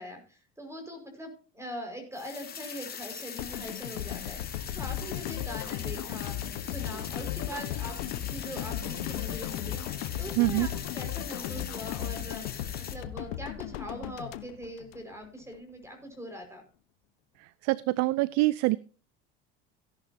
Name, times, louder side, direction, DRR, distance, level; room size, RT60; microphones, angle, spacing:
voice 1, 0.0-6.4 6.6-16.6, equal, 10° right, 4 dB, 5.5 m, -42 dB
sound 1, 2.1-12.9, left 7 dB, 30° left, 3.0 m, -42 dB
sound 2, 3.4-15.6, left 12 dB, 80° left, 1.3 m, -39 dB
sound 3, 4.8-12.4, left 12 dB, 60° left, 1.4 m, -37 dB
voice 2, 10.4-10.7 17.6-18.8, right 20 dB, 60° right, 20 dB, 0.6 m, -25 dB
16.5 x 11.0 x 2.9 m, 0.37 s
hypercardioid pair, 85°, 30 cm